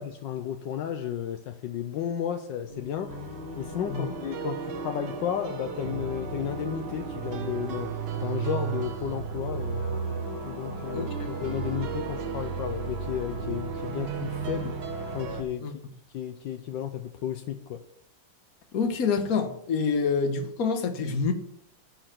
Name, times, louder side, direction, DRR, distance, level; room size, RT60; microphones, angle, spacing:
voice 1, 0.0-3.3 3.5-10.0 10.4-14.8 15.1-15.7 16.1-17.8, left 9 dB, 75° left, 7 dB, 1.4 m, -33 dB
Singing, 2.7-14.8, left 4 dB, 35° left, 2.1 m, -45 dB
sound 1, 3.1-15.4, right 6 dB, 70° right, 1.8 m, -34 dB
voice 2, 10.9-11.3 15.6-15.7 18.7-21.3, left 5 dB, 55° left, 6 dB, 1.5 m, -27 dB
9.9 x 4.6 x 7.6 m, 0.68 s
omnidirectional pair, 2.0 m